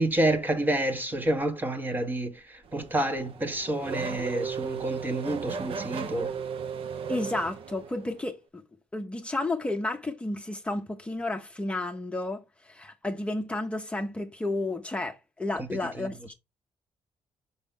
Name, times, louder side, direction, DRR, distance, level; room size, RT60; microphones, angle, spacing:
voice 1, 0.0-6.3 15.5-16.3, right 1 dB, 20° right, 1.0 m, -29 dB
Race car auto racing / Accelerating revving vroom, 2.7-8.2, right 6 dB, 60° right, 0.9 m, -35 dB
voice 2, 7.1-8.6 8.9-16.3, left 2 dB, 10° left, 0.8 m, -32 dB
5.6 x 5.5 x 3.6 m
cardioid pair, 140°, 10 cm